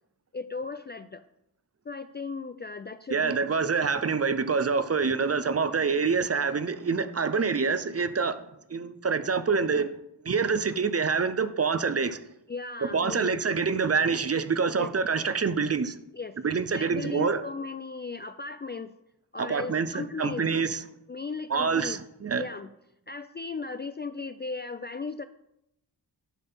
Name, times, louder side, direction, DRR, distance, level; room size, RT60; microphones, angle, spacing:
voice 1, 0.3-1.2 1.9-3.4 12.5-13.5 14.8-14.9 16.1-16.4 16.7-18.9 19.3-20.6 21.1-22.0 22.4-22.7 23.1-25.2, left 4 dB, 25° left, 0.3 m, -36 dB
voice 2, 3.1-8.4 8.7-9.9 10.2-12.2 12.8-16.0 16.4-17.4 19.4-20.8 21.5-22.4, right 5 dB, 35° right, 0.6 m, -26 dB
10.0 x 4.1 x 5.6 m
cardioid pair, 55°, 44 cm